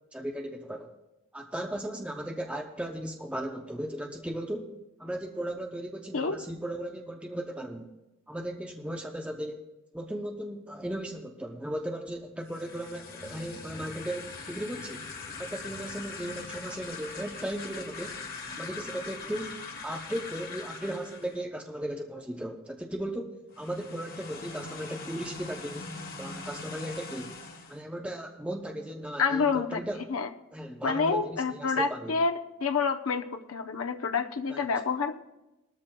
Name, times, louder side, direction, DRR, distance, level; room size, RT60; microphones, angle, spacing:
voice 1, 0.1-0.9 1.3-4.7 5.0-7.9 8.3-9.6 9.9-15.1 15.4-18.2 18.6-25.9 26.2-27.4 27.7-30.0 30.5-32.2 34.5-34.6, right 1 dB, 5° right, 3 dB, 0.6 m, -36 dB
sound 1, 12.4-21.4 23.5-27.8, left 4 dB, 45° left, 1.3 m, -42 dB
voice 2, 29.2-29.8 30.1-30.3 30.8-32.3 32.6-35.2, left 5 dB, 70° left, 6 dB, 0.7 m, -28 dB
20.0 x 13.0 x 2.2 m, 0.99 s
head